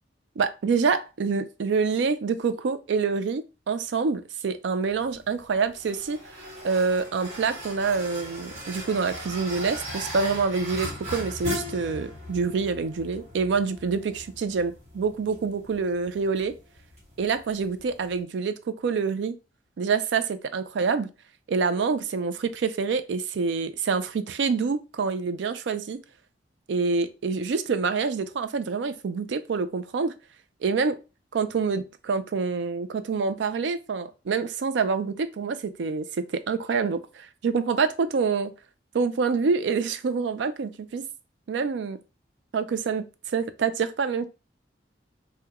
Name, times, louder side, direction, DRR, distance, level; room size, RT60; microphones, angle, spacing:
voice 1, 0.4-6.2 6.6-16.5 17.2-19.3 19.8-21.1 21.5-26.0 26.7-30.1 30.6-31.0 31.3-36.1 36.3-38.5 38.9-41.0 41.5-42.0 42.5-43.0 43.3-44.2, right 5 dB, 70° right, 0.4 m, -26 dB
sound 1, 4.9-18.2, equal, 35° right, 1.6 m, -39 dB
2.9 x 2.2 x 3.5 m
head